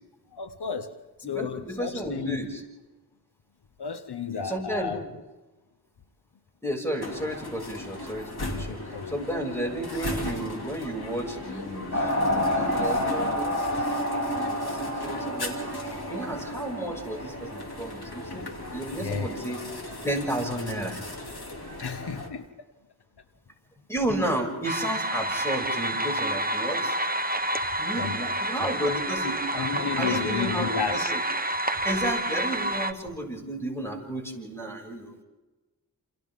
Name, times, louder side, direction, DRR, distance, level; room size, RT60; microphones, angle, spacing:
voice 1, 0.3-1.0 1.3-2.5 3.8-5.0 8.5-9.2 19.0-19.4 21.8-22.5 28.0-28.9 29.5-31.1, left 6 dB, 85° left, 1.1 m, -33 dB
voice 2, 1.2-2.6 4.3-4.9 6.6-8.8 9.1-15.8 16.1-18.4 18.7-19.6 20.0-21.0 23.9-26.9 27.8-31.2 31.8-35.2, right 1 dB, 5° left, 6.7 m, -32 dB
sound 1, 7.0-22.3, left 1 dB, 70° left, 3.0 m, -38 dB
sound 2, 11.9-18.0, left 1 dB, 45° left, 3.3 m, -29 dB
sound 3, 24.6-32.9, right 1 dB, 25° right, 1.1 m, -29 dB
29.0 x 28.0 x 3.8 m
wide cardioid pair, 45°, 39 cm